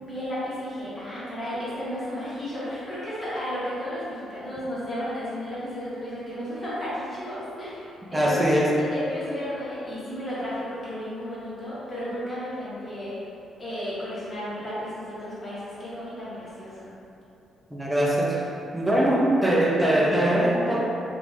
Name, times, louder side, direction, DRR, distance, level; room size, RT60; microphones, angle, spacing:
voice 1, 0.0-8.5 8.9-13.2 13.6-16.9, equal, 25° left, -11 dB, 1.5 m, -33 dB
voice 2, 8.1-8.7 17.7-18.5 18.7-20.9, right 1 dB, 10° right, -3 dB, 0.6 m, -22 dB
3.0 x 2.6 x 3.4 m, 2.8 s
cardioid pair, 90°, 0 cm